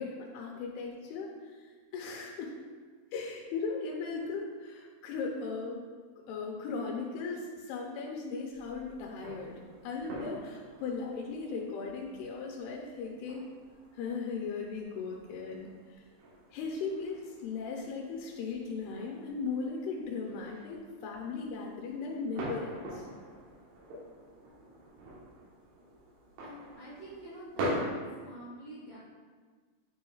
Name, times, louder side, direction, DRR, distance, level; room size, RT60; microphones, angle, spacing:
voice 1, 0.0-2.6 3.1-5.8 6.3-13.5 13.9-16.0 16.5-23.1, left 4 dB, 85° left, -1 dB, 2.6 m, -37 dB
sound 1, 8.5-27.8, right 1 dB, 80° right, 3.2 m, -45 dB
voice 2, 26.4-27.9 28.2-29.0, right 1 dB, 55° right, -9 dB, 2.1 m, -47 dB
9.0 x 4.5 x 2.3 m, 1.5 s
omnidirectional pair, 4.5 m